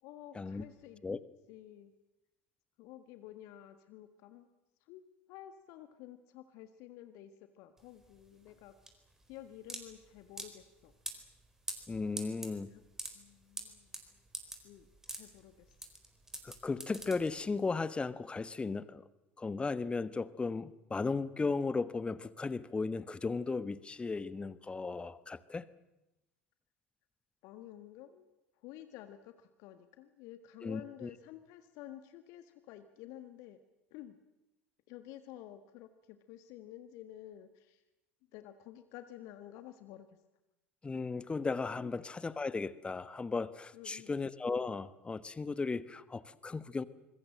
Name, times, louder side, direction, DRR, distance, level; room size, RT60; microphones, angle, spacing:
voice 1, 0.0-1.0 1.5-1.9 2.8-4.5 4.8-5.0 5.3-8.7 9.3-10.9 12.7-12.8 13.1-14.0 14.6-15.7 27.4-28.2 28.6-33.6 33.9-34.1 34.9-37.8 38.3-40.1 43.7-44.1, left 12 dB, 50° left, 10 dB, 1.6 m, -51 dB
sound 1, 7.8-17.7, right 1 dB, 5° right, 4.3 m, -46 dB
voice 2, 11.9-12.7 16.4-19.0 19.4-25.6 30.6-31.1 40.8-46.8, left 4 dB, 15° left, 17 dB, 1.2 m, -36 dB
26.5 x 22.0 x 7.6 m, 0.95 s
figure-of-eight pair, 70°, 7 cm